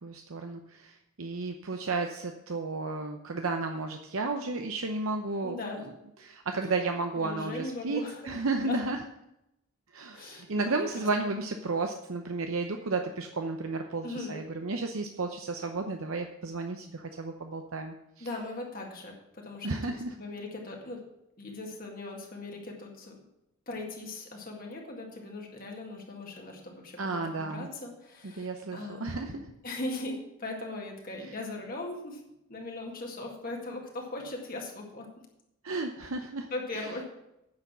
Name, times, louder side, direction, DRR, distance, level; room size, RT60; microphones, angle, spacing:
voice 1, 0.0-5.6 6.2-9.0 9.9-18.3 19.6-20.1 27.0-27.7 28.4-29.5 35.6-36.5 36.7-36.9, right 3 dB, 70° right, 4 dB, 0.8 m, -33 dB
voice 2, 5.4-5.8 7.1-8.8 10.1-10.7 11.0-11.5 14.0-14.4 18.2-19.9 20.2-21.0 21.4-23.2 23.7-32.2 32.5-35.1 36.5-37.1, left 2 dB, 40° left, 0 dB, 2.0 m, -39 dB
9.5 x 6.9 x 7.3 m, 0.85 s
head